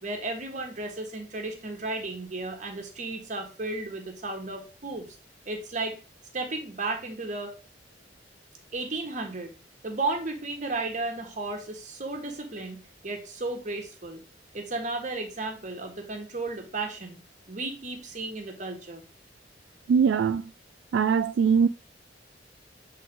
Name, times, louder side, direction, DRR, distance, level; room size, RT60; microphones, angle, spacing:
voice 1, 0.0-5.1 5.4-6.0 6.3-7.5 8.7-9.5 9.8-14.2 14.5-17.2 17.5-19.0, right 2 dB, 45° right, 1.4 m, -34 dB
voice 2, 19.9-20.5 20.9-21.7, right 6 dB, 70° right, 0.3 m, -22 dB
7.6 x 3.9 x 3.7 m
head